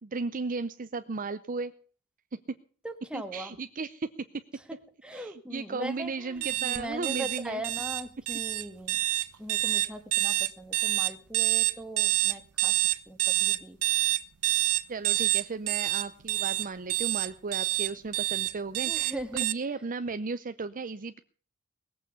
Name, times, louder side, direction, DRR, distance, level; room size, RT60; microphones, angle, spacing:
voice 1, 0.0-1.7 2.3-2.4 3.1-4.1 5.1-7.6 14.9-21.2, right 4 dB, 40° right, 10 dB, 0.6 m, -35 dB
voice 2, 2.8-3.6 5.0-9.0 9.4-12.8 13.1-13.8 18.8-19.4, right 1 dB, 5° right, 6 dB, 1.7 m, -39 dB
sound 1, 6.4-19.5, right 17 dB, 85° right, 0.7 m, -27 dB
19.5 x 8.5 x 6.7 m, 0.43 s
head